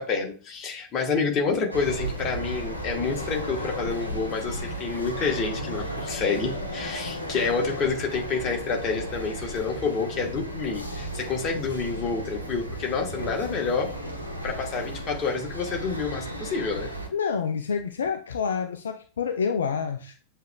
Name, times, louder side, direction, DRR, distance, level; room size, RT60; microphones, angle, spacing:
voice 1, 0.0-13.9 14.4-16.9, left 4 dB, 30° left, 1 dB, 1.3 m, -28 dB
sound 1, 1.7-17.1, equal, 90° left, 0.8 m, -34 dB
voice 2, 17.1-20.2, left 6 dB, 65° left, 6 dB, 0.4 m, -28 dB
7.3 x 3.2 x 2.3 m, 0.38 s
figure-of-eight pair, 90°, 0 cm